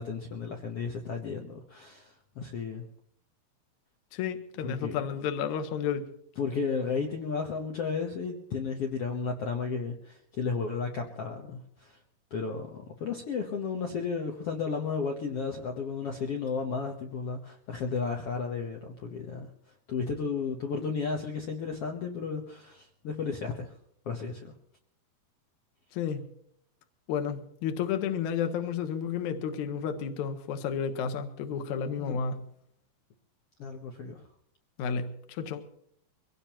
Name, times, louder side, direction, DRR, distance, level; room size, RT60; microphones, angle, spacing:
voice 1, 0.0-2.8 4.6-5.0 6.4-12.0 12.3-19.5 19.9-23.7 24.0-24.5 32.0-32.2 33.6-34.2, left 5 dB, 85° left, 2 dB, 1.3 m, -33 dB
voice 2, 4.1-6.1 25.9-26.2 27.1-32.4 34.8-35.6, left 7 dB, 65° left, 7 dB, 2.2 m, -31 dB
23.5 x 17.5 x 3.0 m, 0.71 s
omnidirectional pair, 4.4 m